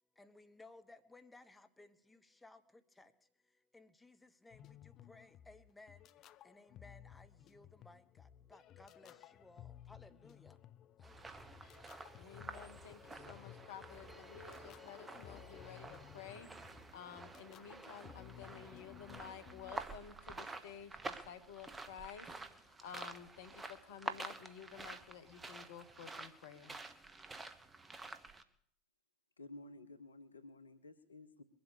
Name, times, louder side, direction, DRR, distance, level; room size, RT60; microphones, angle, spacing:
voice 1, 0.1-10.6 11.0-11.5, left 2 dB, 10° left, 9 dB, 1.2 m, -61 dB
sound 1, 4.5-19.8, left 11 dB, 45° left, 0.6 m, -57 dB
sound 2, 11.0-28.4, right 3 dB, 20° right, 1.3 m, -49 dB
voice 2, 12.2-22.3 22.6-26.8, left 8 dB, 65° left, 10 dB, 1.3 m, -53 dB
voice 3, 29.4-31.4, left 2 dB, 85° left, 12 dB, 0.9 m, -53 dB
22.0 x 8.1 x 6.7 m, 0.66 s
figure-of-eight pair, 80°, 0 cm